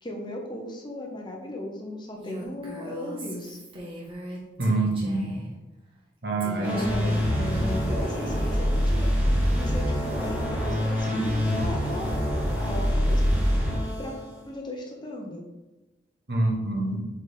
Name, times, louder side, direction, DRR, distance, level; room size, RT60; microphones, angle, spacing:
voice 1, 0.0-3.6 6.6-13.4 14.0-14.2 14.4-15.4, left 1 dB, 25° left, 0 dB, 0.9 m, -37 dB
Female speech woman speaking, 2.2-5.5 6.4-8.6, right 1 dB, 30° right, 1.2 m, -40 dB
voice 2, 4.6-5.4 6.2-6.8 16.3-17.1, right 2 dB, 70° right, 1 dB, 1.1 m, -26 dB
sound 1, 6.6-14.4, equal, 10° right, 1.8 m, -25 dB
4.5 x 4.2 x 4.9 m, 1.1 s
head